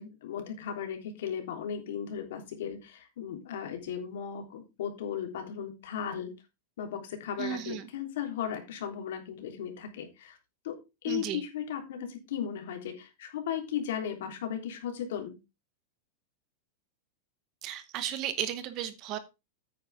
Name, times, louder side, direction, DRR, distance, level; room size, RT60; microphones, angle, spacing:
voice 1, 0.0-6.3 6.8-10.4 10.6-10.8 11.0-15.4, left 8 dB, 65° left, 4 dB, 3.4 m, -36 dB
voice 2, 7.4-7.9 11.1-11.4 17.6-19.2, right 11 dB, 30° right, 13 dB, 1.0 m, -34 dB
9.6 x 9.1 x 3.6 m, 0.25 s
supercardioid pair, 180°, 0 cm